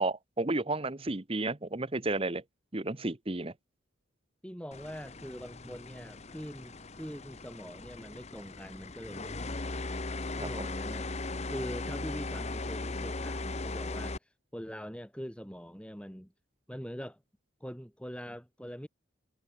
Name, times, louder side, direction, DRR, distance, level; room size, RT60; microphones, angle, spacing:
voice 1, 0.0-2.4 2.7-3.5 10.4-10.5, right 2 dB, 25° right, 1.0 m, -32 dB
voice 2, 4.4-9.7 10.4-11.1 11.5-16.3 16.7-17.2 17.6-18.9, equal, 5° left, 5.0 m, -43 dB
sound 1, 4.7-14.2, left 2 dB, 30° left, 1.0 m, -38 dB
head